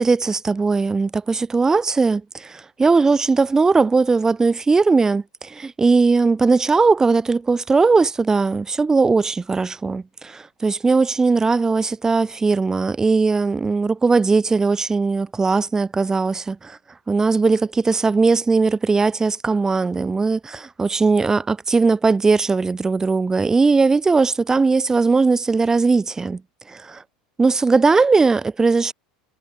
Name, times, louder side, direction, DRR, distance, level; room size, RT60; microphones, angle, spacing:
voice 1, 0.0-10.4 10.6-16.8 17.1-26.4 26.7-27.0 27.4-28.9, right 4 dB, 15° right, 0.4 m, -19 dB
figure-of-eight pair, 75°, 4 cm